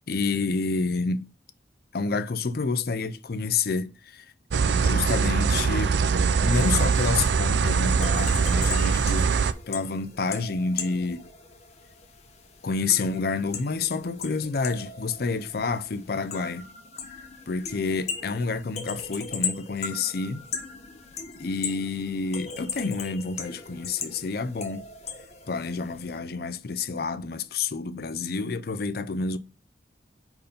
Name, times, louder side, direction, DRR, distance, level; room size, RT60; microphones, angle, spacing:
voice 1, 0.1-1.3 1.9-4.2 4.6-6.0 6.4-9.4 9.7-11.3 12.6-16.7 17.5-20.4 21.4-24.8 25.5-29.4, left 4 dB, 55° left, 0.5 m, -29 dB
sound 1, 4.5-9.5, right 5 dB, 70° right, 0.4 m, -22 dB
sound 2, 7.5-26.2, left 5 dB, 35° left, 1.0 m, -38 dB
5.1 x 4.6 x 5.4 m
head